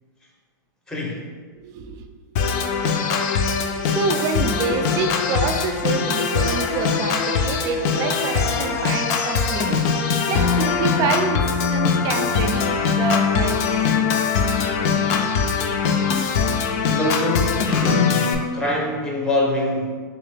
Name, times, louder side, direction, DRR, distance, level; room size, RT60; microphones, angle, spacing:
voice 1, 0.9-1.2 16.9-19.9, left 2 dB, 5° left, -2 dB, 0.7 m, -23 dB
voice 2, 1.6-2.1 3.9-9.8 10.3-13.8, right 6 dB, 35° right, 7 dB, 0.3 m, -27 dB
Organ, 2.4-18.4, left 6 dB, 50° left, 0.4 m, -22 dB
3.5 x 2.9 x 3.3 m, 1.5 s
hypercardioid pair, 125°, 11 cm